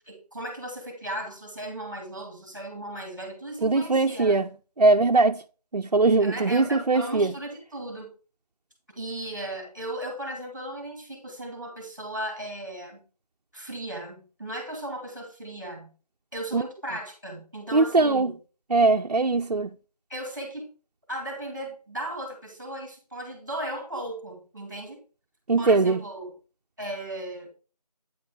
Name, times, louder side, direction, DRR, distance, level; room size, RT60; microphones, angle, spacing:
voice 1, 0.1-4.4 6.2-8.1 8.9-13.0 13.5-15.9 16.3-18.3 20.1-20.7 21.1-25.0 25.6-26.3 26.8-27.5, right 1 dB, 30° right, 2.4 m, -36 dB
voice 2, 3.6-4.5 4.8-5.4 5.7-7.3 16.5-16.6 17.7-18.3 18.7-19.7 25.5-26.0, right 3 dB, 65° right, 0.5 m, -21 dB
9.3 x 5.4 x 3.5 m
figure-of-eight pair, 180°, 21 cm